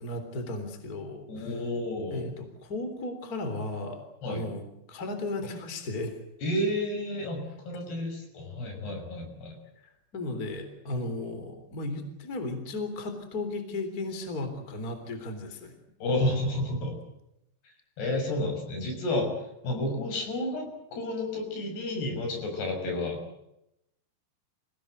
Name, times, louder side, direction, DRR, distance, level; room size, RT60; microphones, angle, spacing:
voice 1, 0.0-1.6 2.1-6.2 10.1-15.7, left 2 dB, 20° left, 7 dB, 3.5 m, -35 dB
voice 2, 1.3-2.3 4.2-4.5 6.4-9.6 16.0-17.0 18.0-19.3 19.6-23.2, left 1 dB, 70° left, 3 dB, 8.3 m, -31 dB
28.0 x 17.5 x 7.9 m, 0.83 s
omnidirectional pair, 4.9 m